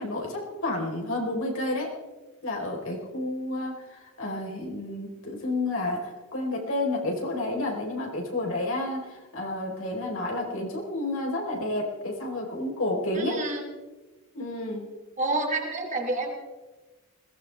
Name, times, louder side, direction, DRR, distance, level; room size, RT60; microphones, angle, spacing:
voice 1, 0.0-1.9 2.4-13.4 14.3-14.8, left 2 dB, 60° left, -1 dB, 4.4 m, -30 dB
voice 2, 13.1-13.6 15.2-16.3, right 2 dB, 35° right, 2 dB, 2.9 m, -28 dB
21.5 x 18.0 x 3.6 m, 1.2 s
head